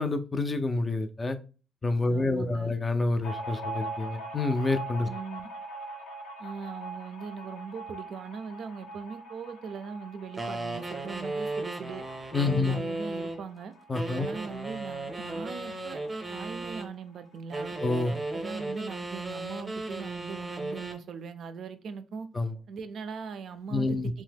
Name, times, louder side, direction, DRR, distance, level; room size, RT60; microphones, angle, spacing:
voice 1, 0.0-1.4 1.8-5.1 12.3-12.8 13.9-14.3 17.8-18.1 22.3-22.5 23.7-24.1, left 3 dB, 25° left, 0.3 m, -28 dB
voice 2, 2.1-2.7 5.1-5.5 6.4-12.0 12.4-13.7 14.1-16.0 16.3-17.7 18.1-22.3 22.7-24.2, right 5 dB, 65° right, 0.3 m, -40 dB
sound 1, 3.2-16.3 16.6-16.7 17.0-17.8, right 2 dB, 80° left, 0.5 m, -42 dB
sound 2, 10.4-13.4 13.9-16.9 17.5-21.0, right 2 dB, 20° right, 0.6 m, -35 dB
2.8 x 2.1 x 3.3 m
cardioid pair, 90°, 0 cm